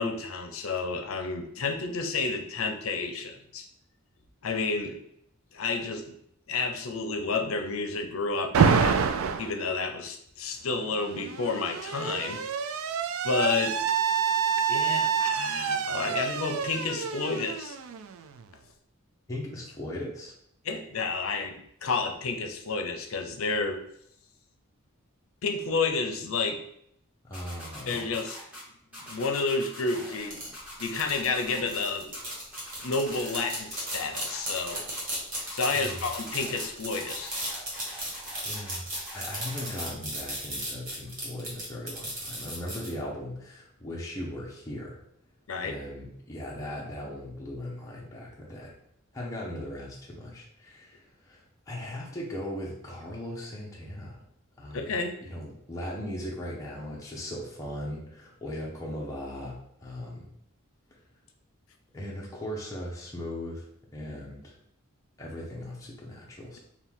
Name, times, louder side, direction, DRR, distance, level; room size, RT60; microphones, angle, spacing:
voice 1, 0.0-3.6 4.4-5.0 5.5-6.1 6.5-9.0 9.4-12.4 13.2-13.8 14.7-17.8 20.6-23.8 25.4-26.6 27.9-28.4 29.0-30.4 30.8-32.1 32.8-34.8 35.5-37.3 45.5-45.8 54.7-55.1, left 4 dB, 75° left, 6 dB, 0.6 m, -30 dB
Alarm, 8.5-9.5 10.7-18.4, right 6 dB, 75° right, 0.3 m, -27 dB
voice 2, 19.3-20.3 27.2-28.1 35.7-36.1 38.4-38.9 39.1-45.0 45.6-48.7 49.1-54.2 54.6-60.3 61.9-63.7 63.9-64.5 65.2-66.6, left 1 dB, 15° left, -4 dB, 0.7 m, -38 dB
sound 1, 27.3-28.6 28.9-30.3 30.5-31.8 32.1-33.5 33.7-35.0 35.3-36.7 36.9-39.9, equal, 5° right, 1.6 m, -44 dB
sound 2, 30.3-42.9, right 1 dB, 40° right, 1.4 m, -35 dB
4.4 x 2.3 x 3.6 m, 0.71 s
head